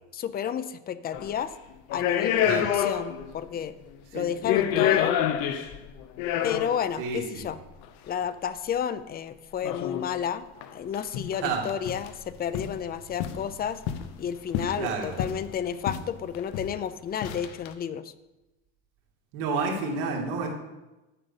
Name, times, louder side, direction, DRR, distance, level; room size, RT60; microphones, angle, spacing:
voice 1, 0.1-1.5 1.9-3.7 4.1-5.2 6.4-7.6 8.1-13.8 14.2-18.1, left 8 dB, 25° left, 14 dB, 0.5 m, -31 dB
sound 1, 1.1-1.4 1.9-3.3 3.6-3.7 4.3-6.9 7.8-7.9 9.6-10.1 10.6-10.7 10.9-11.4 11.7-12.1 12.5-12.8 13.2-14.1 14.5-15.5 15.9-16.1 16.3-16.8 17.2-17.7, left 10 dB, 75° left, 0.9 m, -28 dB
voice 2, 7.0-7.5 11.4-11.7 14.8-15.2 19.3-20.5, right 4 dB, 80° right, 0 dB, 2.4 m, -29 dB
9.9 x 5.2 x 7.1 m, 1.0 s
cardioid pair, 135°, 34 cm